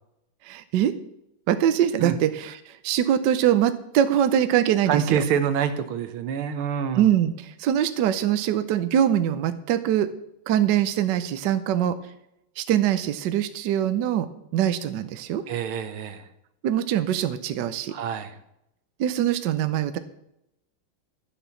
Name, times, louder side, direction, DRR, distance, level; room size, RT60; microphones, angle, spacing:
voice 1, 0.4-0.9 1.5-5.2 7.0-10.1 10.5-12.0 12.6-15.4 16.6-17.9 19.0-20.0, right 10 dB, 65° right, 11 dB, 1.2 m, -23 dB
voice 2, 4.9-7.1 15.5-16.3 17.9-18.4, right 7 dB, 80° right, 10 dB, 1.8 m, -26 dB
11.5 x 7.1 x 7.1 m, 0.82 s
omnidirectional pair, 2.3 m